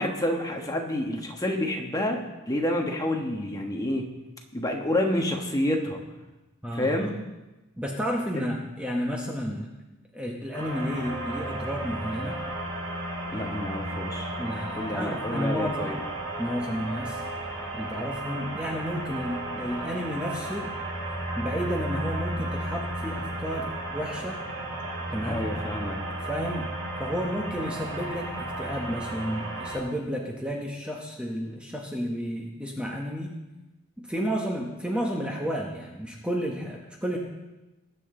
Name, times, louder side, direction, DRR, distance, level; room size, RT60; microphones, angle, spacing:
voice 1, 0.0-4.1 4.5-6.0 6.7-7.1 8.3-8.4 13.3-14.3 14.8-16.0 25.3-26.0, left 1 dB, 15° left, 1 dB, 1.4 m, -28 dB
voice 2, 6.6-7.1 7.8-9.7 10.1-12.4 14.4-16.0 16.4-17.2 17.7-20.7 21.4-24.4 25.1-25.5 26.3-26.7 27.0-33.4 34.0-37.2, equal, 5° right, -1 dB, 1.1 m, -31 dB
sound 1, 10.5-29.8, right 1 dB, 65° right, 5.0 m, -34 dB
20.5 x 7.8 x 3.8 m, 1.1 s
head